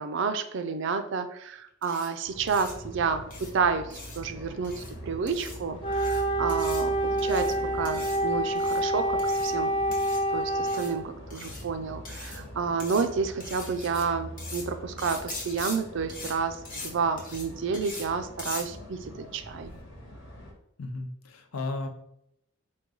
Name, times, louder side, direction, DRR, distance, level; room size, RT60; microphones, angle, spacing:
voice 1, 0.0-9.8 10.3-19.7, right 5 dB, 60° right, 9 dB, 0.4 m, -30 dB
sound 1, 1.8-2.1 2.5-2.7 3.3-3.5 3.9-4.2 4.6-4.9 5.3-5.6 5.9-6.2 6.5-6.8 7.2-7.5 7.8-8.2 8.5-8.8 9.2-9.5 9.9-10.2 10.7-10.9 11.3-11.6 12.0-12.4 12.8-13.0 13.4-14.0 14.4-14.6 15.0-15.8 16.1-16.3 16.6-16.9 17.2-17.4 17.7-18.1 18.4-18.6, left 3 dB, 40° left, 1.0 m, -41 dB
sound 2, 2.2-20.5, equal, 60° left, 1.2 m, -43 dB
Wind instrument woodwind instrument, 5.8-11.0, right 1 dB, 25° left, 0.5 m, -27 dB
voice 2, 20.8-21.9, left 2 dB, 90° left, 6 dB, 0.6 m, -34 dB
4.5 x 2.3 x 3.7 m, 0.76 s
head